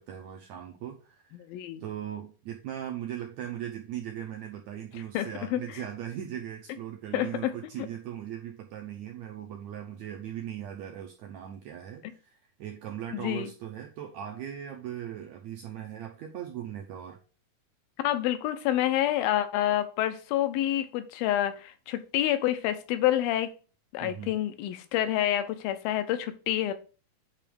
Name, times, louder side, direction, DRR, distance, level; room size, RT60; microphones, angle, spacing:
voice 1, 0.0-1.4 1.8-17.2 24.0-24.4, right 10 dB, 85° right, 2 dB, 1.6 m, -39 dB
voice 2, 1.5-1.8 5.1-5.6 7.1-7.5 13.1-13.5 18.0-23.5 23.9-26.7, left 12 dB, 85° left, 10 dB, 2.5 m, -28 dB
8.7 x 3.1 x 5.0 m, 0.36 s
omnidirectional pair, 4.1 m